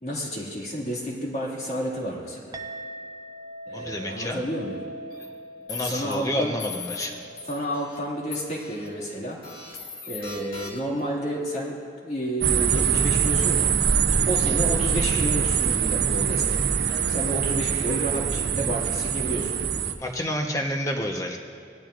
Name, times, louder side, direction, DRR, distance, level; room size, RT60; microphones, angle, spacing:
voice 1, 0.0-2.6 3.7-4.8 5.8-6.5 7.5-9.4 10.1-13.7 14.3-16.8 17.1-19.6, equal, 40° left, -3 dB, 2.3 m, -31 dB
Chink clink, 2.5-11.2, right 1 dB, 20° right, 0.5 m, -43 dB
voice 2, 3.7-4.4 5.7-7.2 20.0-21.4, equal, 20° left, 2 dB, 1.0 m, -29 dB
sound 1, 5.1-5.2 5.7-6.1 6.6-7.1 7.4-8.0 8.3-8.9 9.4-11.0, left 5 dB, 55° left, 1.7 m, -39 dB
sound 2, 12.4-19.9, right 7 dB, 70° right, 0.6 m, -23 dB
18.0 x 12.5 x 2.6 m, 2.6 s
head